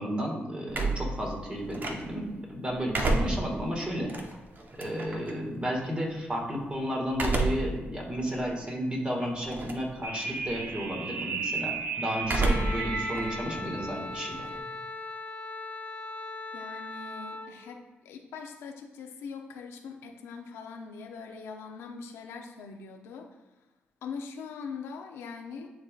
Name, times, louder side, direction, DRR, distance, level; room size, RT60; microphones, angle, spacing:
voice 1, 0.0-4.1 4.8-14.5, equal, 25° right, -1 dB, 1.9 m, -33 dB
sound 1, 0.7-2.3 2.7-5.3 7.1-7.8 8.3-8.4 9.4-9.9 10.2-10.7 12.2-12.9 13.2-14.6, right 2 dB, 45° right, 1.0 m, -30 dB
sound 2, 10.0-13.5, right 4 dB, 65° right, 0.7 m, -34 dB
Wind instrument woodwind instrument, 12.4-17.5, left 2 dB, 30° left, 0.6 m, -38 dB
voice 2, 16.5-23.3 24.0-25.7, left 5 dB, 90° left, 2 dB, 0.7 m, -42 dB
10.5 x 3.7 x 2.4 m, 1.0 s
supercardioid pair, 55°, 4 cm